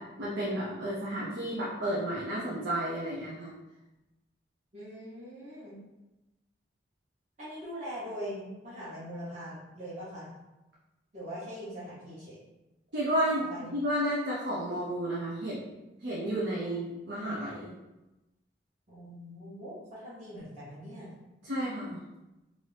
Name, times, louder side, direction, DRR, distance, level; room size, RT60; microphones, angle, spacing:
voice 1, 0.0-3.5 12.9-17.7 21.4-22.0, right 1 dB, 85° right, -6 dB, 0.6 m, -32 dB
voice 2, 4.7-5.8 7.4-10.3 11.1-12.4 13.3-13.8 16.6-16.8 18.9-21.1, equal, 40° right, -11 dB, 0.9 m, -42 dB
2.6 x 2.6 x 3.3 m, 1.0 s
head